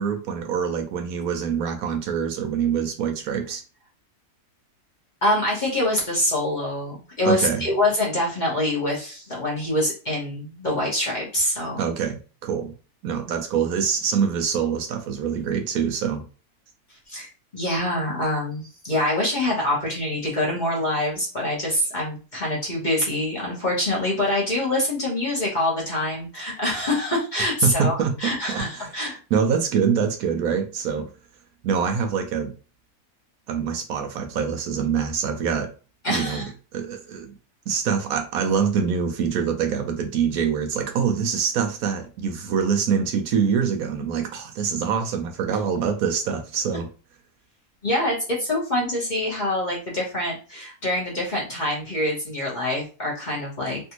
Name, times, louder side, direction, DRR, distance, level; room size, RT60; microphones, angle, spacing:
voice 1, 0.0-3.6 7.3-7.6 11.8-12.7 13.0-16.2 27.6-28.9 29.3-31.1 31.6-32.5 33.5-35.7 36.1-37.3 37.7-46.9, right 7 dB, 75° right, 4 dB, 1.0 m, -25 dB
voice 2, 5.2-11.8 17.1-29.2 36.0-36.5 47.8-53.8, left 1 dB, 35° left, -4 dB, 1.0 m, -25 dB
3.3 x 2.6 x 2.9 m, 0.36 s
omnidirectional pair, 1.6 m